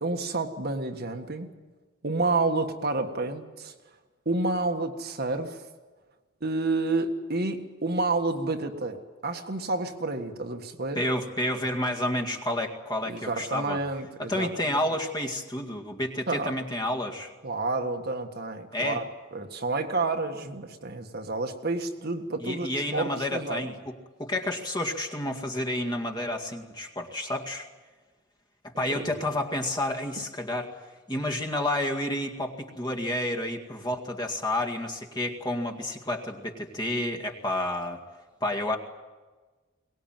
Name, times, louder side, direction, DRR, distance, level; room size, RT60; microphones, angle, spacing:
voice 1, 0.0-1.5 2.0-3.7 4.3-5.6 6.4-11.0 13.1-14.5 16.3-16.5 17.4-19.0 19.3-23.6 28.9-29.2, right 3 dB, 50° right, 5 dB, 1.7 m, -29 dB
voice 2, 11.0-13.8 14.2-17.3 18.7-19.0 22.4-23.9 24.2-27.7 28.6-30.7 31.1-38.0 38.4-38.8, left 1 dB, 20° left, 3 dB, 2.1 m, -30 dB
22.5 x 20.0 x 9.1 m, 1.3 s
head